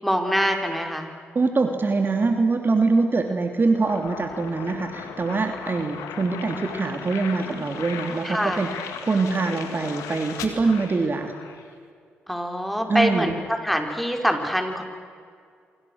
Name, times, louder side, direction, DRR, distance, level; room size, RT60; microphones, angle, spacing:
voice 1, 0.0-1.1 8.2-8.6 12.3-14.8, equal, ahead, 3 dB, 5.4 m, -24 dB
voice 2, 1.3-11.3 12.9-13.3, right 3 dB, 40° right, 5 dB, 3.0 m, -24 dB
sound 1, 3.9-11.7, left 8 dB, 80° left, 2.3 m, -37 dB
29.0 x 25.5 x 6.7 m, 2.2 s
hypercardioid pair, 40°, 5 cm